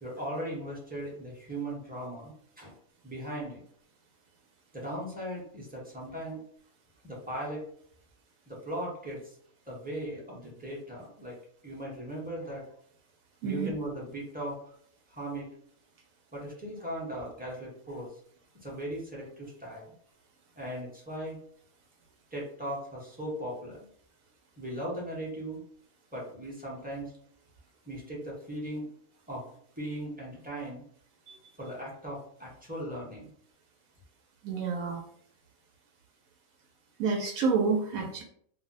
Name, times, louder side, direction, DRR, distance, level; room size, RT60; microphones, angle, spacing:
voice 1, 0.0-2.7 3.0-3.6 4.7-6.4 7.0-7.6 8.5-9.4 9.7-11.4 11.6-12.7 13.4-14.6 15.1-15.5 16.3-18.1 18.6-19.9 20.6-21.4 22.3-23.9 24.6-25.6 26.1-27.1 27.9-28.9 29.3-29.5 29.8-30.8 31.6-33.3, right 1 dB, 10° right, -4 dB, 0.6 m, -38 dB
voice 2, 34.4-35.0 37.0-38.2, right 4 dB, 85° right, 1 dB, 1.0 m, -28 dB
2.5 x 2.1 x 3.9 m, 0.62 s
omnidirectional pair, 1.4 m